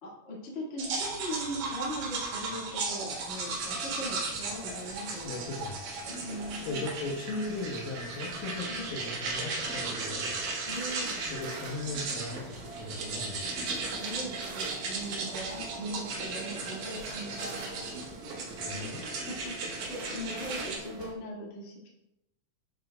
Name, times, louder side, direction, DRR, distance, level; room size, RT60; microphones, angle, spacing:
voice 1, 0.0-5.3 6.1-6.9 8.6-8.9 10.7-11.3 13.8-17.9 18.7-21.9, equal, 35° left, -5 dB, 1.1 m, -40 dB
sound 1, 0.8-20.8, right 3 dB, 60° right, 2.6 m, -36 dB
sound 2, 3.1-21.1, right 3 dB, 80° right, 3.1 m, -46 dB
voice 2, 5.2-5.9 6.6-10.4 11.3-13.5 18.6-19.0, left 3 dB, 75° left, 0 dB, 3.0 m, -38 dB
10.5 x 6.4 x 2.3 m, 0.85 s
omnidirectional pair, 4.3 m